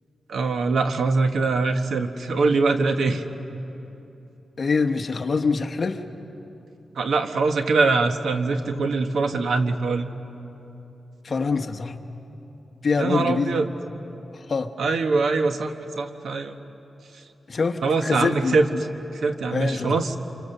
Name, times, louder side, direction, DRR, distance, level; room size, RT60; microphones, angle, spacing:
voice 1, 0.3-3.2 7.0-10.1 13.0-13.7 14.8-16.5 17.8-18.7 19.2-20.1, right 3 dB, 85° right, 6 dB, 1.3 m, -23 dB
voice 2, 4.6-6.0 11.2-12.0 12.8-13.7 14.3-14.7 17.5-18.8 19.5-20.0, left 4 dB, 45° left, 6 dB, 1.2 m, -25 dB
29.0 x 26.5 x 6.8 m, 3.0 s
wide cardioid pair, 135°, 0 cm